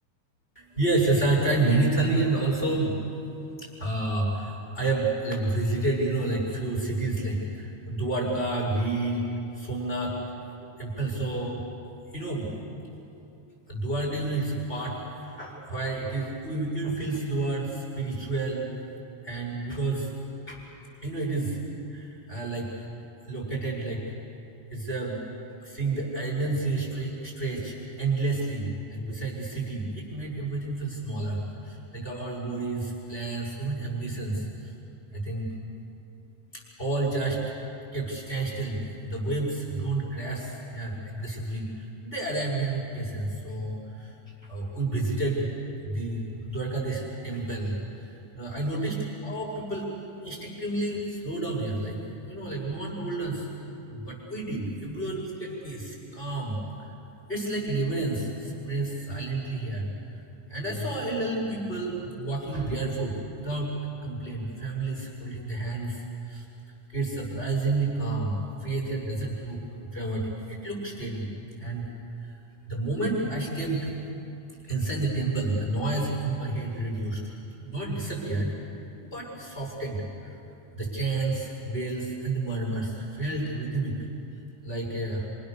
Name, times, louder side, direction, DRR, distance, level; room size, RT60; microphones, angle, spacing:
voice 1, 0.6-2.9 3.6-9.2 9.5-10.2 10.6-11.6 12.1-12.5 13.7-18.8 19.2-20.1 20.5-20.6 21.0-21.6 21.9-22.9 23.3-24.0 24.7-25.2 25.6-34.7 35.1-35.5 36.5-37.4 37.9-44.2 44.4-45.5 45.8-49.9 50.2-52.0 52.3-53.5 53.9-56.6 57.3-59.9 60.5-63.7 64.0-66.5 66.9-69.6 69.9-71.3 71.6-71.9 72.2-73.9 74.6-77.2 77.6-78.5 79.0-80.4 80.7-84.1 84.3-85.3, right 2 dB, 15° left, -3 dB, 7.2 m, -30 dB
29.0 x 27.0 x 7.0 m, 2.8 s
omnidirectional pair, 3.9 m